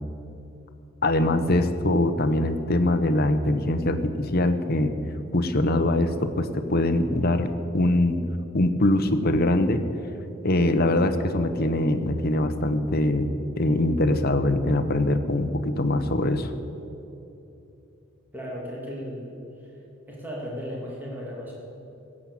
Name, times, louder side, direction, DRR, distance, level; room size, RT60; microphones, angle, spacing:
voice 1, 1.0-4.9 5.3-8.2 8.5-9.8 10.4-13.3 13.6-16.5, left 1 dB, 50° left, 8 dB, 0.9 m, -23 dB
voice 2, 18.3-19.4 20.1-21.5, equal, 10° right, -4 dB, 2.5 m, -35 dB
16.0 x 7.4 x 8.6 m, 2.9 s
head